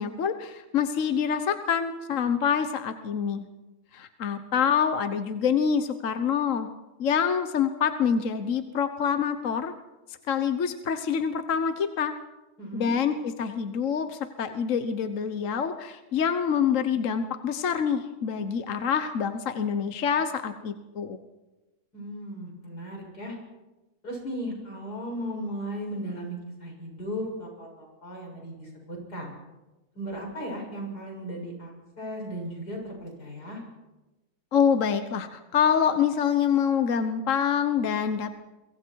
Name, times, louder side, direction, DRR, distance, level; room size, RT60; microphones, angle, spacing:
voice 1, 0.0-3.4 3.9-6.7 7.0-9.7 10.3-12.1 12.7-21.2 34.5-38.3, left 7 dB, 55° left, 9 dB, 1.3 m, -26 dB
voice 2, 12.6-12.9 21.9-23.4 24.0-29.3 30.0-33.6, equal, 90° left, 0 dB, 7.6 m, -36 dB
28.0 x 24.0 x 4.7 m, 1.1 s
omnidirectional pair, 1.6 m